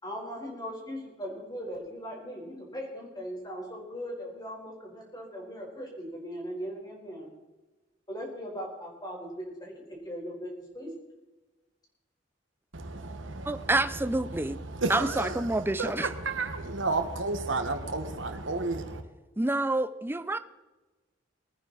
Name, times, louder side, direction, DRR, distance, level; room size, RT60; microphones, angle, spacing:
voice 1, 0.0-7.3 8.1-10.9, equal, 20° left, 4.6 m, -39 dB
voice 2, 12.7-19.0, right 3 dB, 75° right, 1.6 m, -33 dB
voice 3, 13.5-14.6 14.9-16.1 19.4-20.4, right 2 dB, 10° right, 0.5 m, -28 dB
21.5 x 9.6 x 4.2 m
head